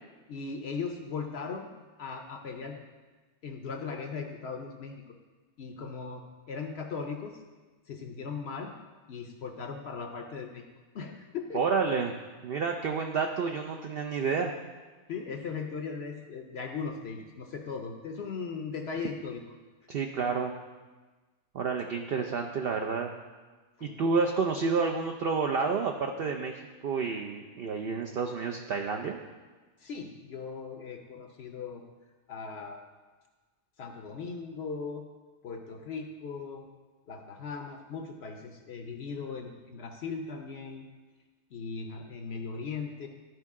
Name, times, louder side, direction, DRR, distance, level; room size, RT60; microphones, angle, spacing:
voice 1, 0.3-1.7 2.0-2.8 3.4-5.0 5.6-7.4 7.9-8.7 9.1-11.6 15.1-19.4 23.8-24.0 29.8-31.9 32.3-32.9 33.8-35.0 35.4-36.7 37.1-40.8 41.5-43.1, left 5 dB, 60° left, 4 dB, 0.7 m, -38 dB
voice 2, 11.5-12.1 12.4-14.5 19.9-20.5 21.5-23.1 23.8-26.5 26.8-29.2, right 5 dB, 70° right, 3 dB, 0.5 m, -29 dB
12.5 x 4.6 x 3.6 m, 1.3 s
omnidirectional pair, 1.5 m